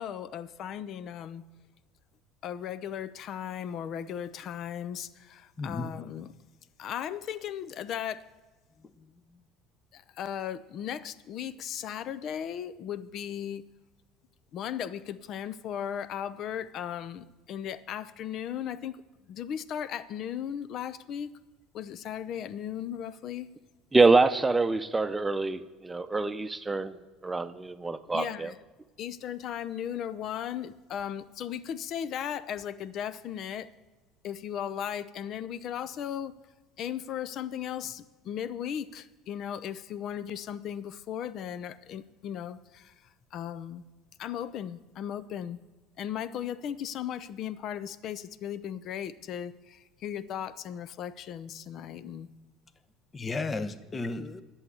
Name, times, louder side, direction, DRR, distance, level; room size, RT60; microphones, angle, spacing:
voice 1, 0.0-1.4 2.4-6.3 6.8-8.3 9.9-13.6 14.5-19.0 19.3-21.3 21.7-23.5 28.1-28.6 29.0-33.7 34.2-36.3 36.8-42.9 43.3-43.8 44.2-45.6 46.0-52.3, left 9 dB, 50° left, 17 dB, 0.6 m, -36 dB
voice 2, 5.6-5.9 8.8-9.4 53.1-54.4, left 3 dB, 25° left, 13 dB, 0.9 m, -35 dB
voice 3, 23.9-28.5, right 3 dB, 15° right, 10 dB, 0.8 m, -25 dB
11.0 x 7.3 x 8.1 m, 1.2 s
hypercardioid pair, 70°, 0 cm